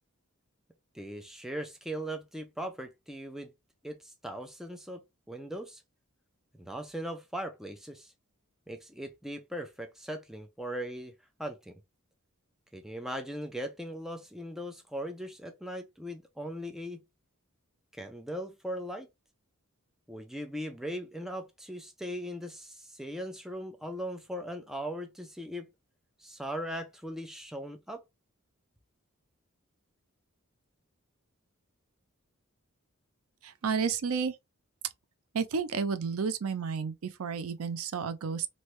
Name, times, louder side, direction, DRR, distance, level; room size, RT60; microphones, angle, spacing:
voice 1, 0.9-3.5 3.8-5.8 6.6-8.1 8.7-11.1 11.4-11.8 12.7-17.0 17.9-19.1 20.1-25.7 26.2-28.0, equal, ahead, 0.4 m, -39 dB
voice 2, 33.4-34.4 35.3-38.5, right 5 dB, 75° right, 0.5 m, -31 dB
3.1 x 2.7 x 3.1 m
head